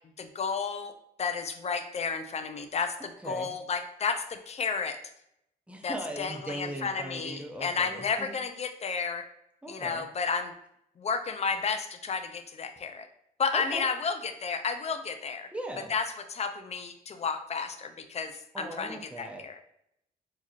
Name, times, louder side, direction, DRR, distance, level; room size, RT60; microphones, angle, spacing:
voice 1, 0.2-0.9 1.2-5.0 5.8-9.3 9.7-10.5 11.0-13.1 13.4-15.5 15.9-19.6, left 5 dB, 40° left, 8 dB, 0.4 m, -32 dB
voice 2, 3.0-3.5 5.7-8.3 9.6-10.1 13.5-13.8 15.5-15.9 18.5-19.4, right 1 dB, 5° right, 1 dB, 0.7 m, -39 dB
4.3 x 2.9 x 2.4 m, 0.76 s
cardioid pair, 95°, 17 cm